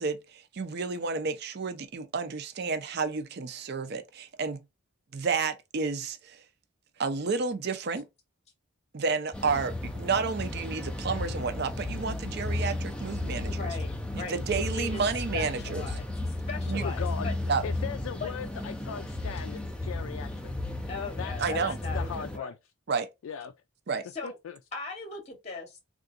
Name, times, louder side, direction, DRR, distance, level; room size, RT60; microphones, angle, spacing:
voice 1, 0.0-4.6 5.1-6.4 7.0-8.1 8.9-13.7 14.1-15.8 16.7-16.8 17.5-17.6 21.4-21.8 22.9-23.1 23.9-24.0, right 4 dB, 50° right, 0.5 m, -31 dB
sound 1, 9.3-22.4, left 2 dB, 5° left, 0.4 m, -34 dB
voice 2, 13.5-15.0 15.3-16.0 16.5-17.3 18.2-18.3 20.9-22.5 24.1-24.3 24.7-25.8, left 4 dB, 30° left, 0.8 m, -39 dB
voice 3, 16.8-17.3 17.6-20.6 20.8-21.3 21.6-22.6 23.2-23.5 24.2-24.6, left 7 dB, 75° left, 0.3 m, -39 dB
3.7 x 2.4 x 2.4 m
head